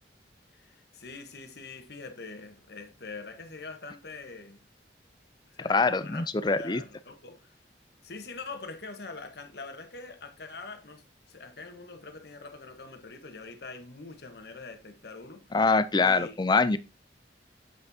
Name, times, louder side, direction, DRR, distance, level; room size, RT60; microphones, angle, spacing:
voice 1, 0.5-4.6 5.5-6.2 6.6-7.5 8.0-15.5 16.0-16.4, left 3 dB, 65° left, 1.3 m, -44 dB
voice 2, 5.6-6.8 15.5-16.8, left 4 dB, 25° left, 0.5 m, -24 dB
7.7 x 6.0 x 2.7 m
head